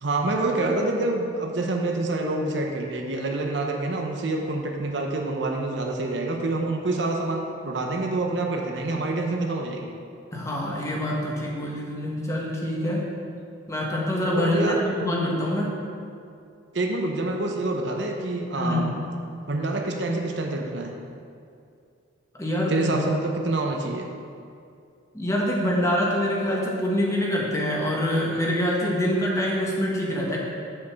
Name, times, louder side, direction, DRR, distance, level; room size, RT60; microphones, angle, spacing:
voice 1, 0.0-9.9 14.2-14.8 16.7-18.9 19.5-20.9 22.7-24.1, right 2 dB, 65° right, 1 dB, 0.8 m, -27 dB
voice 2, 10.3-13.1 13.7-15.7 18.5-18.9 22.3-23.0 25.1-30.4, equal, 15° left, -3 dB, 1.1 m, -25 dB
7.0 x 5.3 x 7.0 m, 2.4 s
head